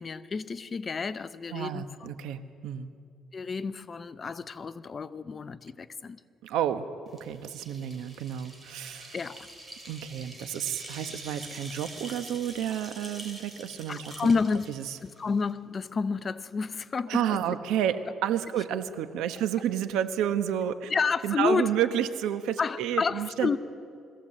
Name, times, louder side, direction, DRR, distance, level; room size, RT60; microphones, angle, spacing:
voice 1, 0.0-1.9 3.3-6.2 9.1-9.5 13.9-14.7 15.0-17.6 20.9-21.8 22.6-23.6, left 5 dB, 30° left, 0.6 m, -30 dB
voice 2, 1.5-2.9 6.4-6.9 7.2-9.1 9.9-14.1 14.8-15.0 17.1-20.9 21.2-23.6, right 10 dB, 90° right, 1.0 m, -30 dB
sound 1, 7.1-15.5, right 1 dB, 15° right, 3.3 m, -45 dB
21.5 x 16.0 x 7.6 m
cardioid pair, 130°, 0 cm